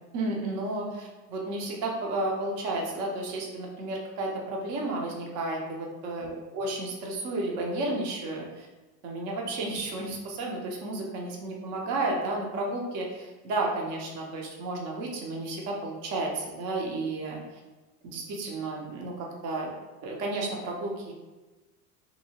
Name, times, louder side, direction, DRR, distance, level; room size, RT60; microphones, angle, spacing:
voice 1, 0.1-8.7 9.0-17.4 18.0-19.7 20.0-21.1, right 2 dB, 40° right, -1 dB, 0.7 m, -32 dB
2.7 x 2.6 x 2.8 m, 1.2 s
hypercardioid pair, 100°, 47 cm